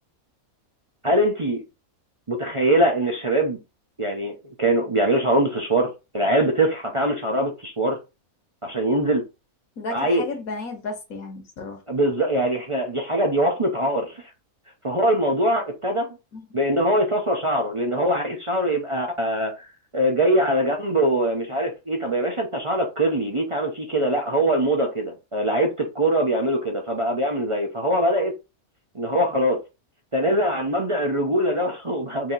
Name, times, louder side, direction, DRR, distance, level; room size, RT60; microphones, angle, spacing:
voice 1, 1.0-1.6 2.3-3.6 4.0-4.3 4.6-8.0 8.6-9.2 9.9-10.2 11.9-14.1 14.8-16.1 16.5-19.7 19.9-28.3 28.9-29.6 30.1-32.3, right 1 dB, 30° right, 0.6 m, -22 dB
voice 2, 9.8-11.8 16.3-16.5, left 3 dB, 90° left, 1.7 m, -33 dB
4.7 x 2.8 x 3.9 m
omnidirectional pair, 1.5 m